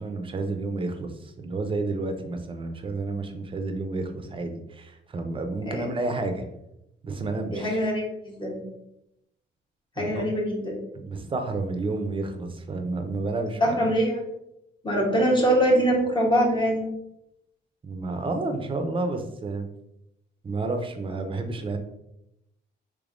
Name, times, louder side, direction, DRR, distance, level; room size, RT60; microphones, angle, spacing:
voice 1, 0.0-6.4 7.0-7.8 10.0-10.2 11.0-13.9 17.8-19.7 20.4-21.8, right 3 dB, 25° right, 6 dB, 0.5 m, -30 dB
voice 2, 7.5-8.7 10.0-10.8 13.6-14.2 14.8-16.8, equal, 25° left, -2 dB, 1.0 m, -23 dB
3.3 x 3.2 x 2.5 m, 0.82 s
cardioid pair, 90°, 20 cm